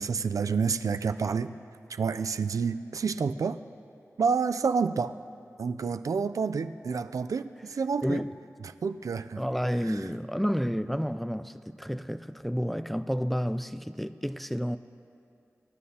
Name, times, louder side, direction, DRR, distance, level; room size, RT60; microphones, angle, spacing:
voice 1, 0.0-1.5 1.9-3.6 4.2-5.2 5.6-8.3 8.6-9.4 9.8-10.0, right 5 dB, 80° right, 0.4 m, -29 dB
voice 2, 8.0-8.3 9.4-14.8, equal, ahead, 0.3 m, -30 dB
24.5 x 11.0 x 2.8 m
wide cardioid pair, 80°, 6 cm